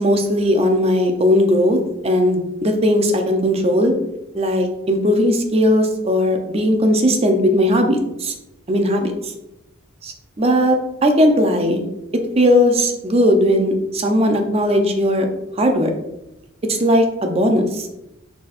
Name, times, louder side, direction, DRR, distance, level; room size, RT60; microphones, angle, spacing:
voice 1, 0.0-3.9 4.3-8.3 8.7-9.3 10.0-11.9 12.4-15.3 15.6-15.9 16.7-17.9, equal, 30° right, 4 dB, 0.6 m, -17 dB
4.6 x 4.2 x 2.4 m, 0.89 s
head